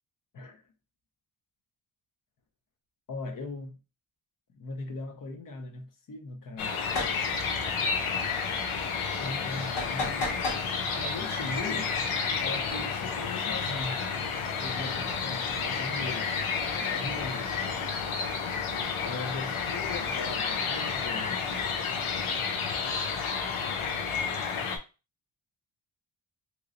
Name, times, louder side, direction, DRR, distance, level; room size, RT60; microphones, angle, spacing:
voice 1, 3.1-3.8 4.5-6.8 9.2-10.6 10.9-11.9 12.4-14.0 14.6-17.5 19.0-21.6, left 3 dB, 40° left, 0.8 m, -39 dB
sound 1, 6.6-24.8, left 5 dB, 85° left, 0.7 m, -31 dB
sound 2, 6.9-7.2 9.8-10.7, left 2 dB, 65° left, 1.6 m, -32 dB
3.1 x 2.9 x 2.5 m
wide cardioid pair, 140°, 48 cm